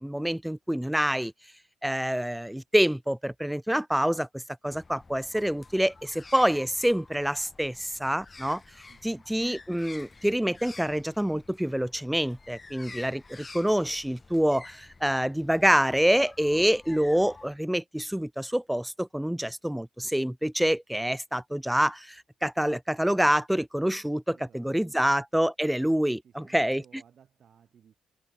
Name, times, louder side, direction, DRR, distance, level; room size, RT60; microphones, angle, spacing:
voice 1, 0.0-1.3 1.8-8.6 9.0-26.8, equal, 5° right, 0.4 m, -26 dB
sound 1, 4.7-17.5, left 3 dB, 25° left, 4.5 m, -50 dB
voice 2, 8.9-9.3 24.3-25.0 26.2-28.0, right 8 dB, 55° right, 6.8 m, -59 dB
cardioid pair, 90°, 0 cm